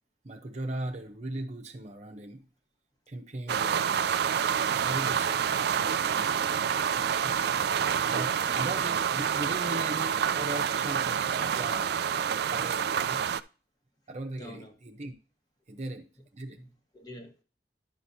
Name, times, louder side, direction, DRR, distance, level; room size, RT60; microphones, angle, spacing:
voice 1, 0.2-2.4 3.1-4.1 4.7-7.4 8.1-13.3 14.1-15.1 15.7-16.6, right 2 dB, 40° right, 5 dB, 0.8 m, -39 dB
voice 2, 3.4-3.8 7.2-7.6 8.4-8.7 14.4-14.7 16.5-17.4, equal, 25° left, 4 dB, 1.3 m, -47 dB
sound 1, 3.5-13.4, right 8 dB, 60° right, 0.4 m, -28 dB
10.5 x 6.0 x 2.7 m, 0.34 s
head